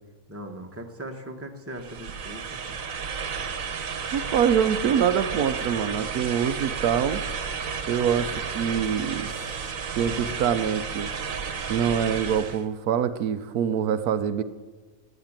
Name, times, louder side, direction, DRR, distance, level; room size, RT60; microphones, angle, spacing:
voice 1, 0.3-2.8, right 1 dB, 10° right, 3 dB, 1.4 m, -39 dB
sound 1, 1.8-12.6, right 6 dB, 60° right, 1.5 m, -32 dB
voice 2, 4.0-7.2 7.9-9.3 10.0-11.1 11.7-14.4, right 8 dB, 80° right, 11 dB, 1.2 m, -25 dB
16.0 x 9.1 x 8.9 m, 1.3 s
omnidirectional pair, 1.6 m